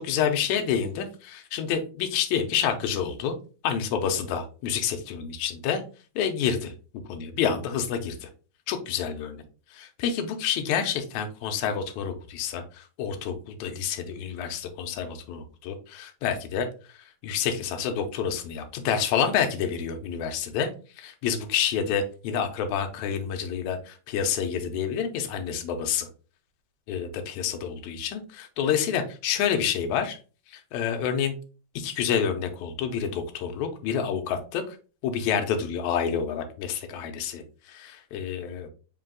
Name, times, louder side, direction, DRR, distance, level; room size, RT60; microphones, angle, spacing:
voice 1, 0.0-3.4 3.6-5.8 6.1-8.3 8.7-9.4 9.7-20.7 21.0-26.1 26.9-30.2 30.5-31.3 31.7-34.8 35.0-38.7, left 7 dB, 80° left, 5 dB, 1.8 m, -28 dB
5.3 x 2.4 x 3.7 m, 0.36 s
omnidirectional pair, 3.9 m